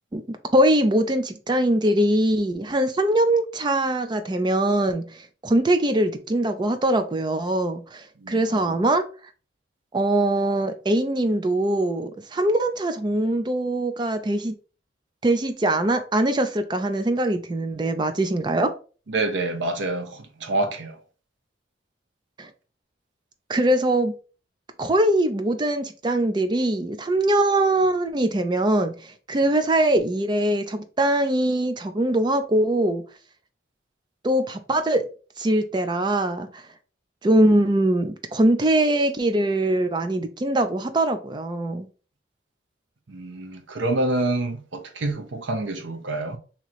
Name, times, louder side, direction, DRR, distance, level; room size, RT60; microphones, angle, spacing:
voice 1, 0.1-5.0 5.4-9.0 9.9-14.5 15.2-18.7 22.4-22.5 23.5-24.1 24.8-28.9 29.3-33.0 34.2-35.0 35.4-36.6 37.2-41.9, right 1 dB, 25° right, 0.4 m, -22 dB
voice 2, 8.2-8.9 19.1-21.0 43.1-46.4, right 2 dB, 70° right, 0.7 m, -27 dB
3.0 x 2.8 x 4.0 m
head